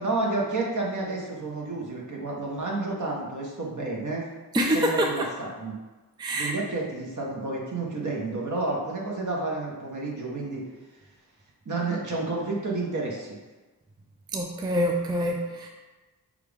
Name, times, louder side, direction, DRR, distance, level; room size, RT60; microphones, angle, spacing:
voice 1, 0.0-4.3 4.7-5.8 6.4-10.6 11.6-13.4, right 2 dB, 50° right, -3 dB, 1.3 m, -30 dB
voice 2, 4.5-5.1 6.2-6.5 14.3-15.7, equal, 10° right, 1 dB, 0.4 m, -25 dB
5.8 x 2.4 x 3.5 m, 1.2 s
cardioid pair, 50°, 40 cm